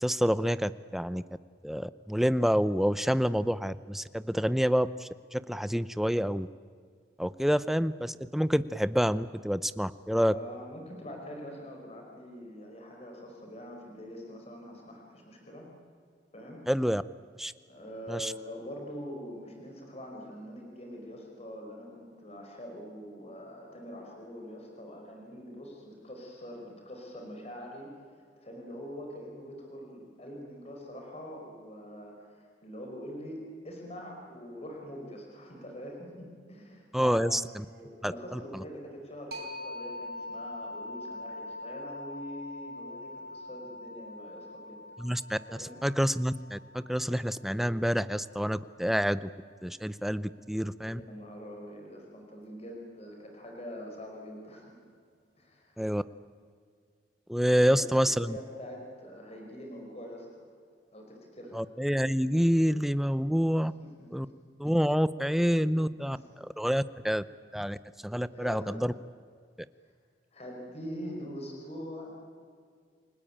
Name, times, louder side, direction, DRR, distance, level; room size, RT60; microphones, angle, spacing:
voice 1, 0.0-1.2 1.6-6.5 7.2-10.3 16.7-17.0 17.4-17.5 18.1-18.3 36.9-37.6 38.0-38.6 45.0-49.3 49.6-51.0 55.8-56.0 57.3-58.4 61.5-63.7 64.1-64.3 64.6-67.2 67.5-67.8 68.0-68.9, equal, ahead, 15 dB, 0.6 m, -28 dB
voice 2, 10.1-15.7 16.3-16.6 17.7-27.9 28.4-44.8 45.6-45.8 50.8-54.8 55.4-55.9 57.5-60.4 60.9-61.6 63.8-64.4 65.8-66.5 68.3-68.9 70.3-72.2, equal, 35° left, 1 dB, 5.1 m, -44 dB
sound 1, 39.3-48.7, left 2 dB, 65° right, 4.2 m, -43 dB
29.0 x 19.5 x 8.8 m, 2.1 s
head